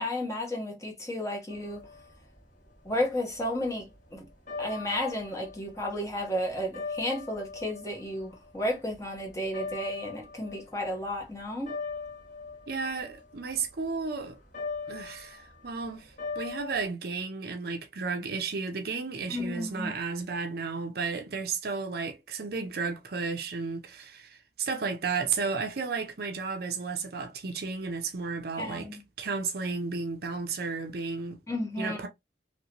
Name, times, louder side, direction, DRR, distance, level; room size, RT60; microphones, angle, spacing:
voice 1, 0.0-1.8 2.8-3.9 4.1-4.3 4.6-11.7 19.3-19.9 28.6-29.0 31.5-32.1, left 1 dB, 20° left, 1.1 m, -32 dB
sound 1, 1.5-11.2 11.5-16.9, left 4 dB, 50° left, 1.8 m, -41 dB
voice 2, 12.7-14.4 14.9-28.9 29.2-31.4 31.8-32.1, right 4 dB, 60° right, 0.6 m, -33 dB
2.9 x 2.9 x 2.8 m
head